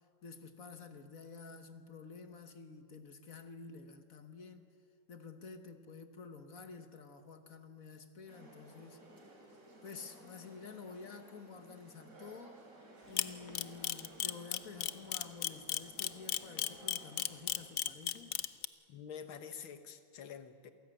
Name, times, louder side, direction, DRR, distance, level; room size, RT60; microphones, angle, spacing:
voice 1, 0.2-4.7 5.1-9.0 9.8-12.6 13.1-18.4, left 5 dB, 50° left, 1.4 m, -50 dB
sound 1, 8.3-17.7, right 1 dB, 40° right, 4.1 m, -57 dB
Camera, 13.2-18.6, left 11 dB, 65° left, 0.8 m, -33 dB
voice 2, 18.9-20.7, left 7 dB, 85° left, 2.1 m, -47 dB
27.5 x 18.0 x 8.9 m
omnidirectional pair, 2.2 m